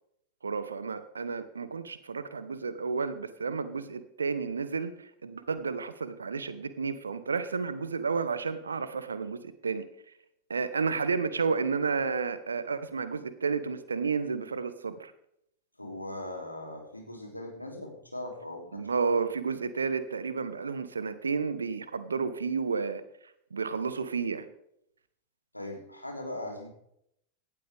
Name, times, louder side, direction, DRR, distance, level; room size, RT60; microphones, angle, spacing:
voice 1, 0.4-9.8 10.5-15.1 18.7-23.0 23.5-24.5, right 5 dB, 75° right, 13 dB, 1.1 m, -31 dB
voice 2, 15.8-19.0 25.5-26.7, left 1 dB, 85° left, 1 dB, 3.1 m, -40 dB
17.5 x 12.5 x 3.5 m, 0.75 s
figure-of-eight pair, 90°, 0 cm